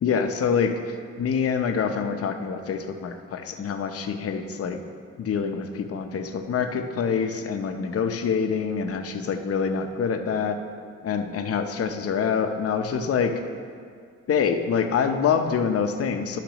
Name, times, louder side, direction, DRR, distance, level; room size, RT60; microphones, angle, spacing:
voice 1, 0.0-4.8 5.2-10.6 11.0-13.3 14.3-16.4, left 6 dB, 50° left, 6 dB, 0.7 m, -26 dB
11.5 x 5.9 x 3.0 m, 2.2 s
cardioid pair, 90°, 30 cm